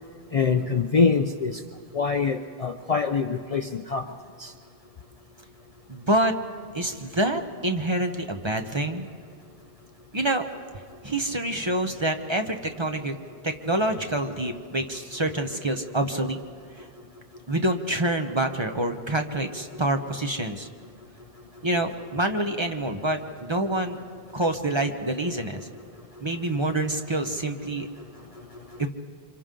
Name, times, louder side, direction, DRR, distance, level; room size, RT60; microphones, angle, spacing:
voice 1, 0.3-1.6 1.9-4.0 4.4-4.5, left 5 dB, 45° left, 6 dB, 0.6 m, -24 dB
voice 2, 5.9-6.4 6.7-9.1 10.1-10.5 11.0-13.2 13.4-16.4 16.8-16.9 17.5-20.7 21.6-24.0 24.3-25.7 26.2-27.9 28.8-28.9, right 1 dB, 30° right, 5 dB, 0.9 m, -27 dB
28.0 x 26.0 x 3.8 m, 2.1 s
omnidirectional pair, 1.0 m